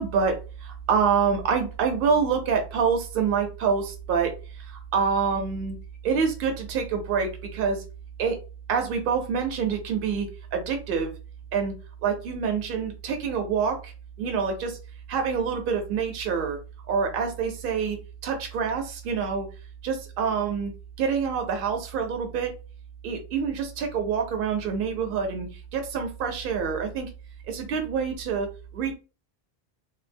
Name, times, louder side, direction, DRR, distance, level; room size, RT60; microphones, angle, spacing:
voice 1, 0.0-4.3 4.7-5.8 6.0-7.8 8.2-8.4 8.7-11.1 11.5-11.7 12.0-13.9 14.2-14.8 15.1-16.6 16.9-19.5 19.8-20.7 21.0-22.5 23.0-27.1 27.5-28.5 28.7-28.9, right 6 dB, 65° right, 4 dB, 0.8 m, -26 dB
2.2 x 2.0 x 3.3 m, 0.33 s
omnidirectional pair, 1.0 m